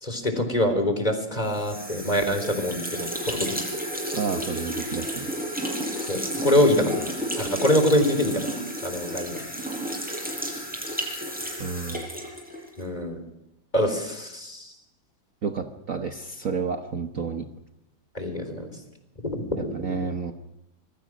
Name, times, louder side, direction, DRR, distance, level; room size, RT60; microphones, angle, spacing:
voice 1, 0.0-3.6 6.1-7.1 7.4-8.4 8.8-9.4 12.8-13.2 13.7-14.7 18.1-18.7 19.2-20.0, left 1 dB, 20° left, 7 dB, 3.8 m, -25 dB
sound 1, 1.4-12.9, equal, 5° right, 7.3 m, -32 dB
voice 2, 4.1-5.3 11.6-12.1 15.4-17.5 19.7-20.3, right 5 dB, 50° right, 5 dB, 1.4 m, -30 dB
26.0 x 22.0 x 6.2 m, 0.88 s
omnidirectional pair, 2.1 m